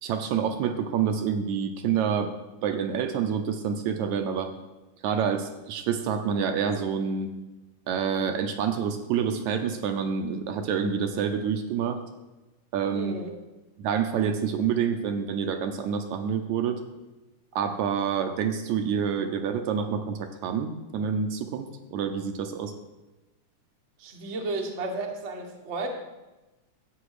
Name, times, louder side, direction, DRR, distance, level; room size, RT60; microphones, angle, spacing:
voice 1, 0.0-2.3 2.6-4.5 5.0-7.3 7.9-12.0 12.7-13.1 13.8-16.8 17.6-22.7, right 7 dB, 75° right, 6 dB, 2.0 m, -27 dB
voice 2, 12.9-13.3 24.0-25.9, right 2 dB, 40° right, 1 dB, 1.0 m, -33 dB
13.5 x 8.6 x 4.9 m, 1.1 s
omnidirectional pair, 3.6 m